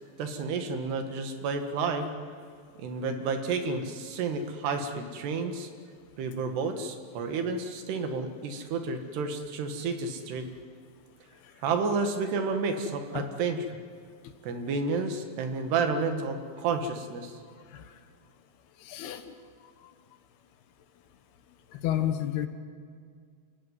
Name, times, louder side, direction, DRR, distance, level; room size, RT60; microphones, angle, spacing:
voice 1, 0.2-2.1 2.8-5.7 6.2-10.5 11.6-13.6 14.4-17.4, right 4 dB, 75° right, 6 dB, 3.8 m, -30 dB
voice 2, 18.8-19.3 21.7-22.5, left 11 dB, 70° left, 8 dB, 3.0 m, -31 dB
27.5 x 16.0 x 9.6 m, 2.2 s
omnidirectional pair, 5.0 m